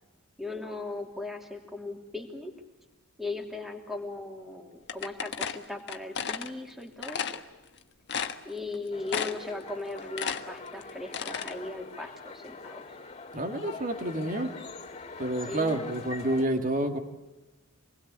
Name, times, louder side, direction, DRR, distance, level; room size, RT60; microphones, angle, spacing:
voice 1, 0.4-2.5 3.2-7.4 8.4-12.8 15.4-15.9, left 2 dB, ahead, 2 dB, 3.0 m, -38 dB
sound 1, 4.9-6.5 7.0-7.4 7.8-7.9 8.1-8.7 9.1-9.5 9.8-11.5, left 7 dB, 55° left, 1.4 m, -33 dB
sound 2, 8.9-16.5, left 3 dB, 30° left, 3.5 m, -43 dB
voice 2, 13.3-14.5 15.2-17.0, right 1 dB, 40° right, 5 dB, 2.4 m, -29 dB
27.0 x 20.5 x 8.4 m, 1.1 s
head